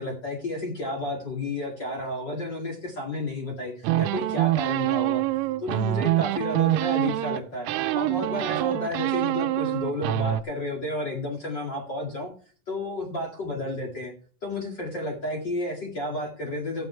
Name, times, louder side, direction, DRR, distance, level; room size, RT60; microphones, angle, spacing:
voice 1, 0.0-5.2 5.6-7.7 7.9-12.3 12.7-14.1 14.4-16.9, left 2 dB, 45° left, 1 dB, 1.4 m, -31 dB
sound 1, 3.8-7.4 7.7-10.4, right 15 dB, 90° right, 3.3 m, -25 dB
15.0 x 8.9 x 3.3 m, 0.40 s
omnidirectional pair, 5.7 m